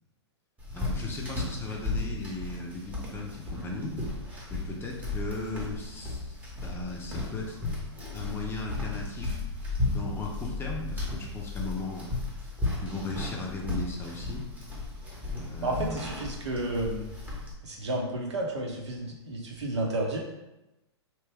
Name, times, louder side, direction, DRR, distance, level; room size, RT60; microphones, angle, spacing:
sound 1, 0.6-17.5, left 2 dB, 10° right, 0.8 m, -35 dB
voice 1, 0.7-4.0 4.5-7.6 8.1-9.5 9.9-12.1 12.8-14.5 15.4-16.0, left 3 dB, 15° left, -1 dB, 0.5 m, -37 dB
voice 2, 15.6-17.1 17.6-20.2, right 1 dB, 80° right, -1 dB, 0.9 m, -31 dB
2.9 x 2.2 x 3.3 m, 0.97 s
hypercardioid pair, 120°, 15 cm